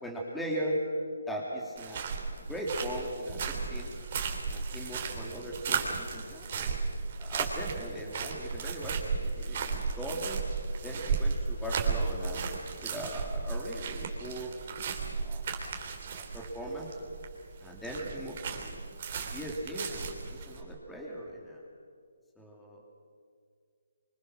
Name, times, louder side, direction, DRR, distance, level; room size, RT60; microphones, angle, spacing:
voice 1, 0.0-0.8 1.3-2.1 2.5-3.9 4.5-6.8 7.2-10.4 10.8-12.5 12.8-14.5 15.1-15.4 16.1-16.9 17.6-18.8 19.3-21.6 22.4-22.9, equal, 5° left, -3 dB, 2.7 m, -39 dB
sound 1, 1.8-20.6, right 5 dB, 45° right, 3.2 m, -35 dB
25.0 x 24.5 x 6.3 m, 2.1 s
figure-of-eight pair, 155°, 0 cm